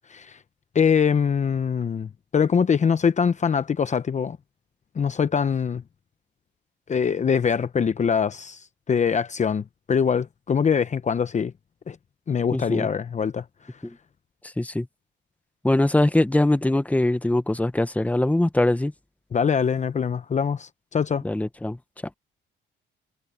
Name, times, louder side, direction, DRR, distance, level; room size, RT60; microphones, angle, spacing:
voice 1, 0.7-4.4 5.0-5.8 6.9-11.5 11.9-12.0 12.3-13.4 19.3-21.2, left 6 dB, 35° left, 0.8 m, -23 dB
voice 2, 12.5-12.9 13.8-14.0 14.6-14.9 15.6-18.9 21.2-21.8, left 1 dB, 5° left, 1.2 m, -22 dB
cardioid pair, 90°, 20 cm